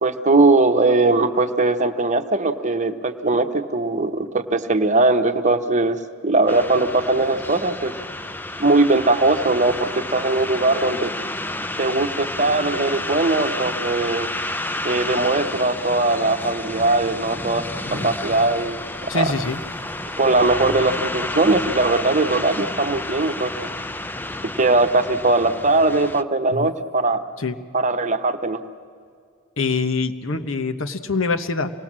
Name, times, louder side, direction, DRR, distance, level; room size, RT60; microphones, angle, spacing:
voice 1, 0.0-7.9 8.6-11.1 11.8-14.3 14.8-17.6 17.9-19.3 20.2-23.5 24.6-27.2 27.7-28.6, right 2 dB, 35° right, 7 dB, 1.0 m, -20 dB
sound 1, 6.5-26.2, left 2 dB, 10° left, 0.5 m, -30 dB
voice 2, 19.1-19.6 26.5-26.7 27.4-27.6 29.6-31.7, left 3 dB, 75° left, 9 dB, 1.1 m, -24 dB
26.5 x 19.0 x 7.5 m, 2.3 s
head